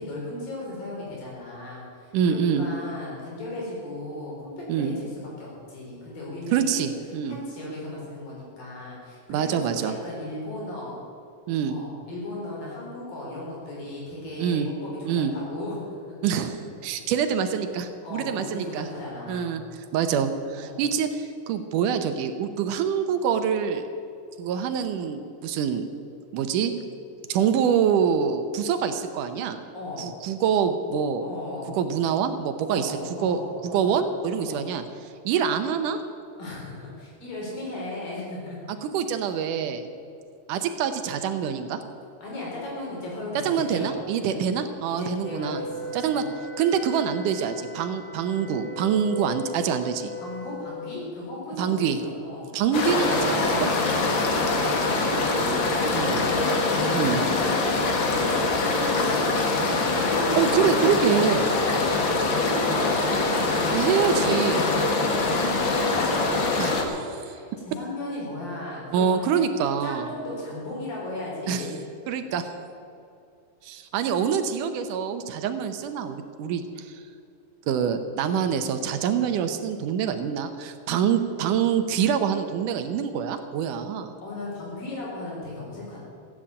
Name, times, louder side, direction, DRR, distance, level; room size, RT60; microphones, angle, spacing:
voice 1, 0.0-5.1 5.4-6.9 7.3-11.0 11.7-16.3 18.0-19.7 20.6-20.8 29.7-30.1 31.2-31.8 32.7-33.9 34.3-34.7 36.4-38.6 42.2-44.5 44.9-46.3 50.2-52.5 53.7-56.7 57.0-60.7 61.5-62.1 62.4-64.8 65.2-66.4 67.1-69.4 69.8-71.8 84.2-86.0, left 1 dB, 90° left, -4 dB, 6.2 m, -36 dB
voice 2, 2.1-2.6 4.7-5.0 6.5-7.4 9.3-9.9 11.5-11.8 14.4-14.7 15.0-15.3 16.2-18.9 19.3-19.6 19.9-23.8 24.4-25.8 26.3-26.7 27.3-29.6 30.0-31.3 31.7-34.8 35.3-36.0 38.7-39.8 40.5-41.8 43.4-45.6 45.9-46.2 46.6-50.1 51.6-52.0 52.5-53.7 55.9-56.3 56.9-57.2 60.4-61.5 63.7-64.7 66.6-67.2 68.9-70.1 71.5-71.6 72.1-72.5 73.6-76.9 77.7-84.1, right 7 dB, 75° right, 8 dB, 2.3 m, -25 dB
Wind instrument woodwind instrument, 45.2-50.7, left 2 dB, 20° left, 1.8 m, -39 dB
sound 1, 52.7-66.8, left 3 dB, 45° left, 1.7 m, -24 dB
15.5 x 8.7 x 8.6 m, 2.4 s
omnidirectional pair, 3.9 m